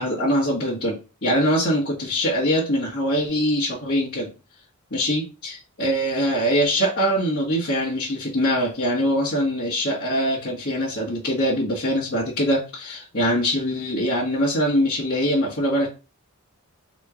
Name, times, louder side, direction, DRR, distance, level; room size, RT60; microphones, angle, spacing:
voice 1, 0.0-4.3 4.9-15.9, equal, 50° left, -8 dB, 1.4 m, -23 dB
4.2 x 3.1 x 3.7 m, 0.32 s
head